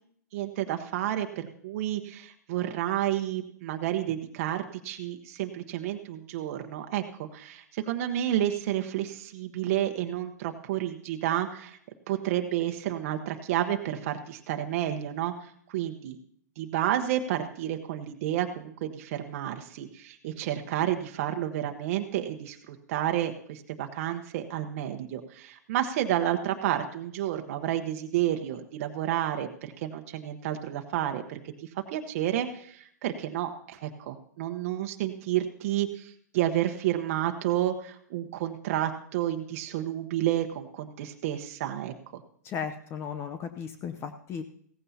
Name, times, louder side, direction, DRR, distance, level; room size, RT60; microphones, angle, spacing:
voice 1, 0.3-11.8 12.1-16.2 16.6-31.4 31.7-42.2, right 12 dB, 50° right, 5 dB, 1.1 m, -30 dB
voice 2, 42.4-44.4, left 7 dB, 25° left, 8 dB, 0.7 m, -35 dB
16.5 x 15.0 x 2.8 m, 0.63 s
hypercardioid pair, 130°, 9 cm